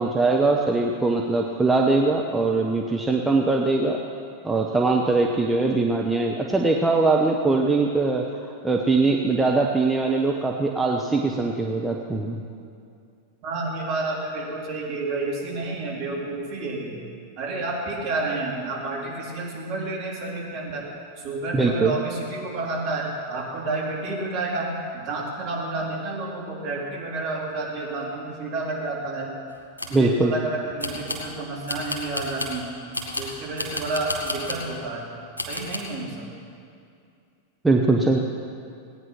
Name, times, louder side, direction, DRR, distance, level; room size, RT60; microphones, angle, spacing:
voice 1, 0.0-4.0 4.4-8.2 8.6-12.4 21.5-22.0 29.9-30.3 37.6-38.2, right 3 dB, 10° right, 0 dB, 1.0 m, -21 dB
voice 2, 13.4-17.0 17.4-20.8 21.2-29.3 29.9-32.7 33.2-35.0 35.5-36.3, right 2 dB, 45° right, -4 dB, 3.9 m, -30 dB
sound 1, 29.5-30.0 30.8-31.3 31.7-32.6 32.9-34.7 35.4-35.8, left 1 dB, 80° left, 1.9 m, -32 dB
18.0 x 9.4 x 5.9 m, 2.4 s
figure-of-eight pair, 90°, 0 cm